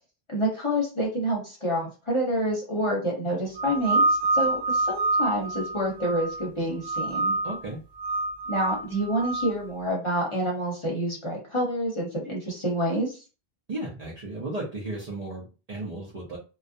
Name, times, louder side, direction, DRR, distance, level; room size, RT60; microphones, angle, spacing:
voice 1, 0.3-4.0 4.3-7.4 8.5-13.2, equal, 30° left, -3 dB, 0.7 m, -28 dB
sound 1, 3.6-6.5 6.8-7.6 8.0-9.5, right 2 dB, 65° right, 1.0 m, -26 dB
voice 2, 7.4-7.8 13.7-16.4, right 2 dB, 45° right, -4 dB, 0.6 m, -34 dB
2.4 x 2.1 x 2.5 m, 0.33 s
omnidirectional pair, 1.1 m